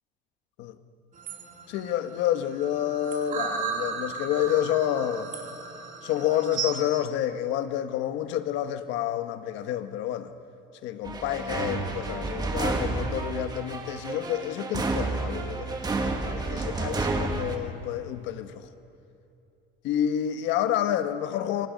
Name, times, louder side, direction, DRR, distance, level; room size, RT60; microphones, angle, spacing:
sound 1, 1.2-6.9, right 5 dB, 40° right, 2.9 m, -35 dB
voice 1, 1.7-5.3 6.0-10.3 10.8-15.8 16.2-18.7 19.8-21.7, left 11 dB, 65° left, 1.4 m, -29 dB
sound 2, 11.0-17.6, right 3 dB, 20° right, 1.8 m, -30 dB
27.0 x 23.0 x 5.4 m
cardioid pair, 145°, 20 cm